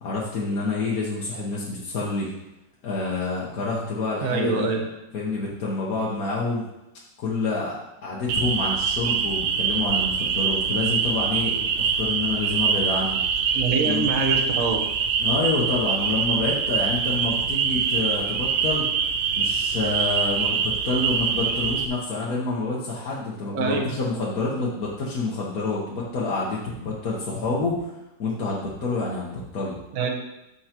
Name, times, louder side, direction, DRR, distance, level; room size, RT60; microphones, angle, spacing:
voice 1, 0.0-2.3 2.8-4.7 5.1-6.6 7.2-13.2 13.8-14.1 15.2-18.9 19.4-27.7 28.2-29.8, left 3 dB, 55° left, -5 dB, 1.4 m, -28 dB
voice 2, 4.2-4.9 13.5-14.9 23.5-23.9 29.9-30.1, right 4 dB, 50° right, 1 dB, 1.3 m, -24 dB
sound 1, 8.3-21.9, right 6 dB, 70° right, 1.2 m, -24 dB
13.0 x 4.6 x 2.9 m, 0.93 s
omnidirectional pair, 2.1 m